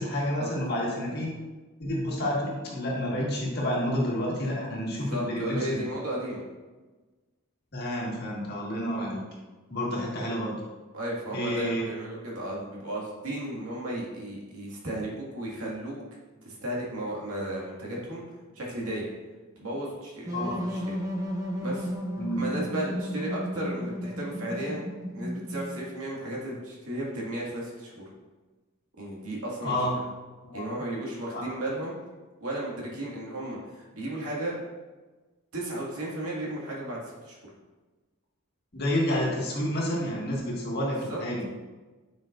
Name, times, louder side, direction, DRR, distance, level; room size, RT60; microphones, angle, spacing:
voice 1, 0.0-1.3 1.8-6.0 7.7-9.2 9.7-10.5 11.3-11.9 20.3-20.5 22.2-22.4 29.6-30.0 30.4-30.7 31.3-31.5 38.7-41.5, equal, 45° left, -4 dB, 1.7 m, -29 dB
voice 2, 5.1-6.4 10.9-16.0 16.4-18.2 18.5-19.1 19.6-21.0 21.6-21.9 22.4-24.8 25.1-28.0 29.0-29.8 30.5-31.9 32.4-34.5 35.5-37.4 41.1-41.2, right 1 dB, 85° right, -4 dB, 2.0 m, -34 dB
sound 1, 20.2-25.9, equal, 15° right, 0.9 m, -33 dB
9.1 x 5.6 x 2.6 m, 1.3 s
head